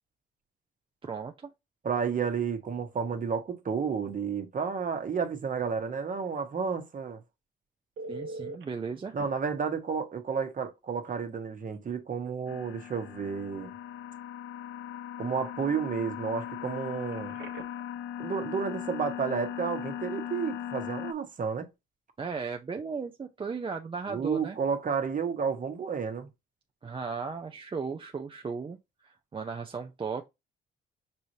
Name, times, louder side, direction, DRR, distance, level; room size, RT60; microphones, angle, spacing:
voice 1, 1.0-1.5 8.1-9.2 22.2-24.6 26.8-28.8 29.0-30.3, right 5 dB, 25° right, 0.5 m, -36 dB
voice 2, 1.8-7.2 9.1-13.7 15.2-17.4 18.2-21.7 24.1-26.3, right 6 dB, 40° right, 1.2 m, -31 dB
Telephone, 8.0-8.6 9.2-9.3 11.1-11.2 11.6-11.8 17.1-17.9 25.0-25.2, right 2 dB, 75° right, 1.0 m, -42 dB
sound 1, 12.5-21.1, left 10 dB, 75° left, 0.5 m, -39 dB
5.4 x 3.1 x 2.7 m
cardioid pair, 90°, 20 cm